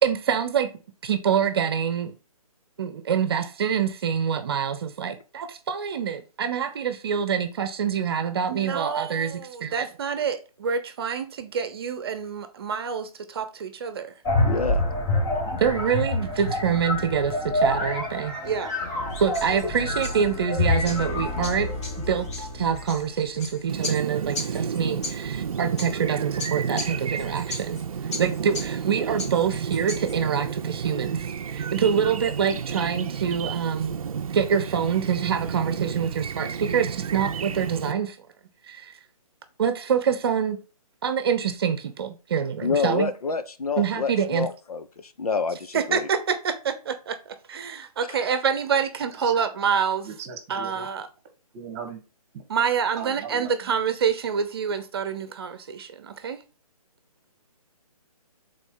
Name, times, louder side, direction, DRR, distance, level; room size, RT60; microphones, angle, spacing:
voice 1, 0.0-0.7 1.0-2.1 2.8-14.1 15.6-18.7 19.2-21.7 22.0-25.3 25.6-27.8 28.2-33.9 34.3-38.2 38.7-38.9 39.6-40.6 41.0-43.1 43.8-44.5 45.7-47.2 47.5-50.1 50.5-51.1 52.5-56.4, right 7 dB, 40° right, 0.9 m, -26 dB
sound 1, 14.3-23.1, left 2 dB, 15° left, 1.2 m, -27 dB
voice 2, 14.4-14.8 42.6-46.1 48.1-48.2, left 5 dB, 75° left, 1.0 m, -28 dB
sound 2, 19.1-30.2, left 2 dB, 50° left, 2.3 m, -39 dB
Chirp tweet, 23.7-37.9, right 7 dB, 65° right, 0.6 m, -31 dB
voice 3, 50.0-50.9 51.5-52.0 52.3-52.4 53.0-53.7, right 7 dB, 25° right, 1.5 m, -38 dB
8.2 x 3.9 x 3.9 m
hypercardioid pair, 155°, 19 cm